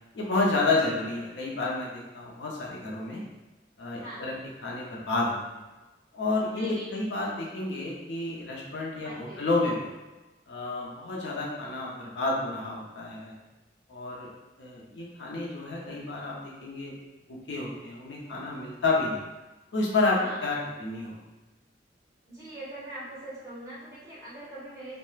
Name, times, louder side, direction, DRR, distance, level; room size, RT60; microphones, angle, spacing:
voice 1, 0.1-3.2 3.8-4.3 4.6-5.6 6.1-9.9 10.5-13.4 13.9-14.3 14.6-16.9 17.3-19.2 19.7-21.2, left 3 dB, 85° left, -3 dB, 0.6 m, -30 dB
voice 2, 6.5-7.0 9.0-9.5 20.2-20.4 22.3-25.0, right 1 dB, 20° right, -10 dB, 1.1 m, -42 dB
2.3 x 2.1 x 3.1 m, 1.1 s
head